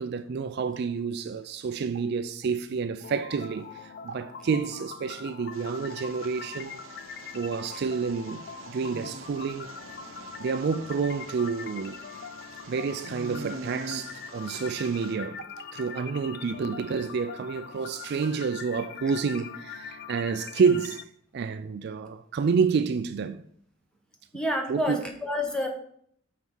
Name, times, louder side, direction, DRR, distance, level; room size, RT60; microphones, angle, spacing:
voice 1, 0.0-6.8 7.3-9.7 10.4-12.0 12.7-21.0 21.3-23.5 24.7-25.1, right 5 dB, 55° right, 0.4 m, -29 dB
sound 1, 3.0-21.0, left 6 dB, 55° left, 0.5 m, -42 dB
sound 2, 5.5-15.2, right 3 dB, 90° right, 0.8 m, -45 dB
voice 2, 24.3-25.7, left 1 dB, 5° left, 1.1 m, -28 dB
6.3 x 4.6 x 5.4 m
head